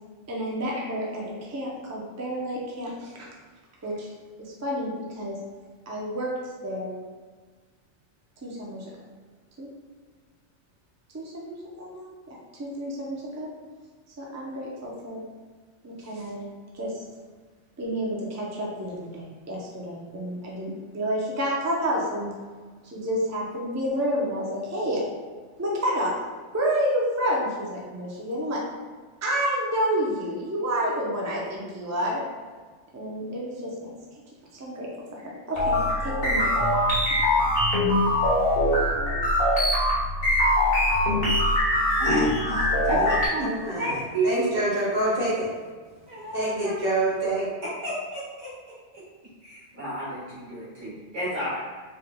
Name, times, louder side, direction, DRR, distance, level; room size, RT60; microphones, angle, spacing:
voice 1, 0.3-3.2 3.8-4.1 4.6-5.4 5.9-6.3 6.6-7.0 8.4-8.9 9.6-9.7 11.1-12.1 12.6-13.5 14.2-15.2 15.8-16.5 16.7-16.9 17.8-22.3 22.9-25.0 25.6-26.1 26.5-28.6 29.2-32.2 32.9-33.9 34.5-34.9 35.1-36.5, equal, 20° right, -4 dB, 0.4 m, -29 dB
sound 1, 35.6-43.3, left 1 dB, 50° left, 1.3 m, -22 dB
voice 2, 42.0-44.5 46.1-46.7 47.6-48.5 48.9-49.0 49.4-51.6, right 1 dB, 70° right, -9 dB, 2.0 m, -31 dB
voice 3, 43.4-45.5 46.3-47.5, right 1 dB, 90° right, -8 dB, 1.8 m, -27 dB
4.3 x 3.4 x 2.2 m, 1.5 s
omnidirectional pair, 1.3 m